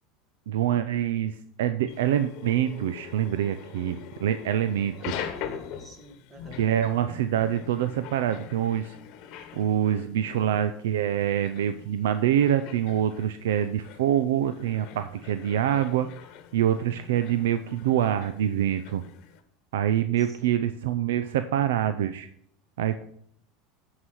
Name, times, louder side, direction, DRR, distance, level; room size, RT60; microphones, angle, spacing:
voice 1, 0.5-5.3 6.6-9.0 9.5-16.1 16.5-19.0 19.7-22.3 22.8-23.0, right 10 dB, 85° right, 10 dB, 0.5 m, -25 dB
sound 1, 1.9-19.4, left 8 dB, 55° left, 1.1 m, -43 dB
voice 2, 5.0-6.7 20.3-20.7, left 1 dB, 25° right, 5 dB, 1.8 m, -48 dB
11.5 x 4.9 x 5.5 m, 0.67 s
supercardioid pair, 120°, 0 cm